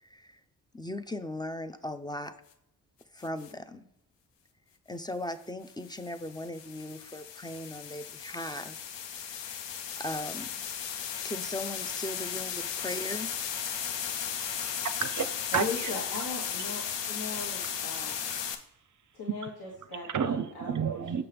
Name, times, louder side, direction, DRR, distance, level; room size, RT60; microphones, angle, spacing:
voice 1, 0.7-2.3 3.1-3.9 4.9-8.8 9.2-9.4 10.0-10.5 11.2-13.3, left 1 dB, 10° left, 11 dB, 0.4 m, -38 dB
sound 1, 3.2-3.5 5.7-18.6, left 8 dB, 85° left, 0.7 m, -36 dB
voice 2, 14.4-15.6 18.4-18.5 20.1-21.2, right 7 dB, 45° right, 12 dB, 0.5 m, -31 dB
voice 3, 15.5-16.8 17.1-18.2 19.1-21.2, left 3 dB, 60° left, -3 dB, 1.5 m, -38 dB
6.8 x 5.6 x 3.4 m, 0.82 s
cardioid pair, 60°, 43 cm